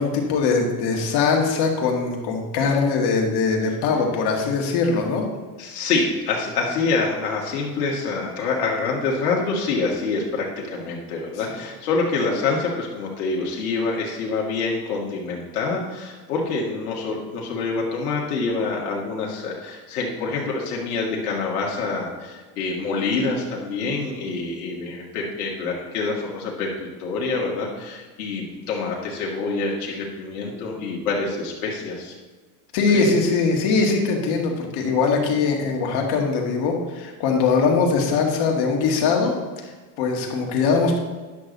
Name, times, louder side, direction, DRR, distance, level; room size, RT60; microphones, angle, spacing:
voice 1, 0.0-5.2 32.7-39.3 39.6-41.0, left 4 dB, 60° left, 1 dB, 2.2 m, -21 dB
voice 2, 5.6-32.1 32.9-33.0, left 4 dB, 90° left, -2 dB, 1.9 m, -26 dB
10.5 x 6.5 x 4.0 m, 1.4 s
supercardioid pair, 110°, 44 cm